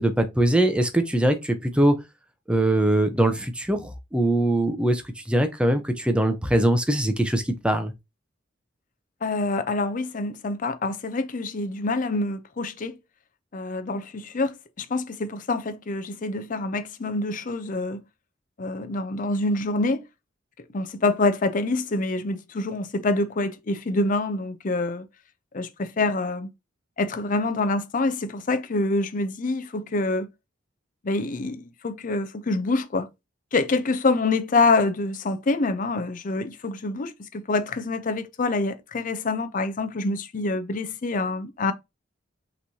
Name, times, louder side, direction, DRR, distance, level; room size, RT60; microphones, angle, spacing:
voice 1, 0.0-1.9 2.5-5.0 5.3-7.9, right 1 dB, 5° right, 0.6 m, -22 dB
voice 2, 9.2-13.0 13.5-18.0 18.6-20.0 20.7-25.1 25.5-26.5 27.0-30.3 31.0-33.1 33.5-41.7, left 3 dB, 40° left, 0.5 m, -26 dB
5.8 x 3.1 x 2.7 m
head